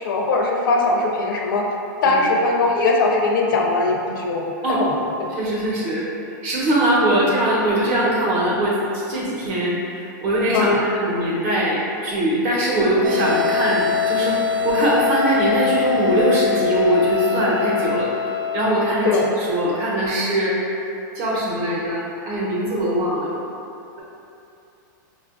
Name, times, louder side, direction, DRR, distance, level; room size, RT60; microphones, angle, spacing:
voice 1, 0.0-1.7 2.0-5.3 7.2-7.3 10.5-10.8 19.0-19.3, left 3 dB, 75° left, 1 dB, 0.5 m, -20 dB
voice 2, 5.3-6.0 6.4-18.1 18.5-19.1 19.4-20.6 21.1-23.3, right 1 dB, 40° right, -6 dB, 0.9 m, -21 dB
sound 1, 13.0-20.0, left 6 dB, 65° right, 0.3 m, -24 dB
5.0 x 2.4 x 2.4 m, 2.7 s
supercardioid pair, 165°, 11 cm